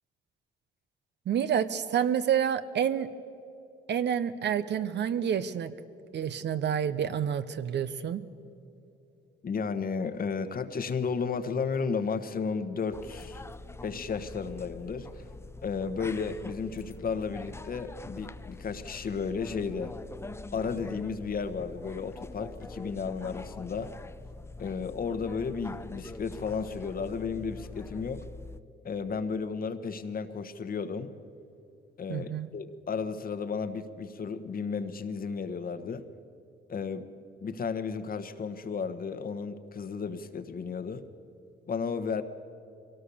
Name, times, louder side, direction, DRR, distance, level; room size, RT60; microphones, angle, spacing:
voice 1, 1.3-3.1 3.9-5.7 6.1-8.2 32.1-32.5, right 8 dB, 60° right, 13 dB, 0.9 m, -28 dB
voice 2, 9.4-13.4 13.8-15.2 15.6-19.9 20.5-23.9 24.6-28.2 28.8-31.1 32.0-36.0 36.7-37.1 37.4-41.0 41.7-42.2, left 5 dB, 45° left, 10 dB, 1.3 m, -33 dB
sound 1, 12.9-28.6, left 2 dB, 15° left, 0.6 m, -44 dB
22.5 x 17.5 x 7.1 m, 2.6 s
cardioid pair, 90°, 20 cm